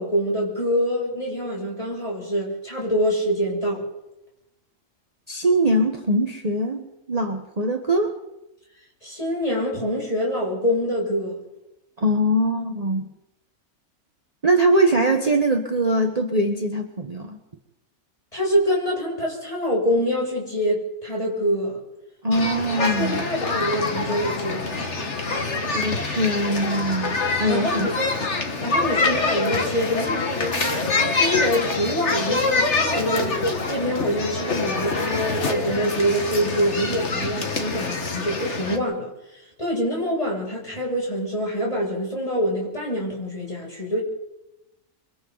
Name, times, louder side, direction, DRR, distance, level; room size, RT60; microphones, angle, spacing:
voice 1, 0.0-3.9 9.0-11.4 18.3-21.8 22.8-24.9 27.5-28.1 28.6-44.0, equal, 25° left, -4 dB, 7.9 m, -25 dB
voice 2, 5.3-8.2 12.0-13.1 14.4-17.4 22.2-23.3 25.7-27.9, right 1 dB, 30° right, 3 dB, 1.4 m, -22 dB
sound 1, 22.3-38.8, left 3 dB, 50° left, 2.1 m, -25 dB
27.0 x 24.5 x 4.1 m, 0.91 s
omnidirectional pair, 1.5 m